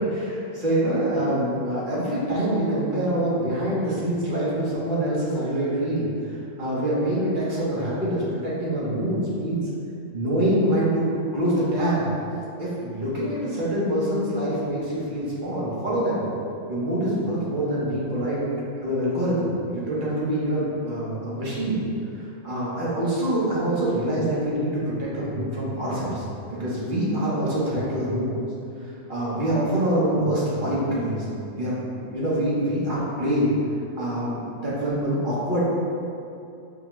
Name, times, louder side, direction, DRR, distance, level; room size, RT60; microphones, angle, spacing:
voice 1, 0.0-9.6 10.1-11.0 11.3-12.1 12.6-16.2 16.7-18.4 18.8-21.8 22.2-26.2 26.5-28.3 29.1-31.2 31.5-33.5 33.9-35.6, right 1 dB, 40° right, -8 dB, 0.9 m, -25 dB
5.7 x 2.2 x 3.0 m, 2.6 s
omnidirectional pair, 1.6 m